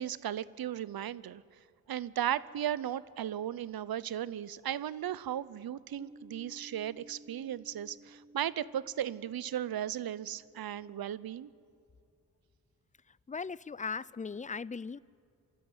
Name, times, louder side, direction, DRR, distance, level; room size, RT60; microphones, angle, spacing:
voice 1, 0.0-1.4 1.9-11.5, right 10 dB, 75° right, 0.7 m, -36 dB
sound 1, 6.0-11.5, right 1 dB, 15° right, 1.1 m, -57 dB
voice 2, 13.3-15.0, left 5 dB, 20° left, 0.4 m, -38 dB
26.5 x 13.0 x 9.7 m
cardioid pair, 60°, 36 cm